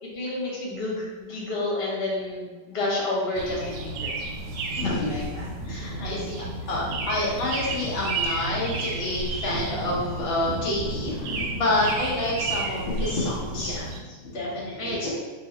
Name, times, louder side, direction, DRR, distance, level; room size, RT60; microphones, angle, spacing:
voice 1, 0.0-4.1 4.8-5.4 6.1-6.2 13.6-14.2 14.8-15.2, left 2 dB, 40° left, -5 dB, 1.0 m, -30 dB
sound 1, 3.3-14.0, right 3 dB, 90° right, 1.4 m, -32 dB
voice 2, 4.7-5.2 5.6-13.7 14.2-15.1, left 2 dB, 80° left, -5 dB, 0.5 m, -28 dB
2.9 x 2.9 x 4.0 m, 1.3 s
omnidirectional pair, 2.1 m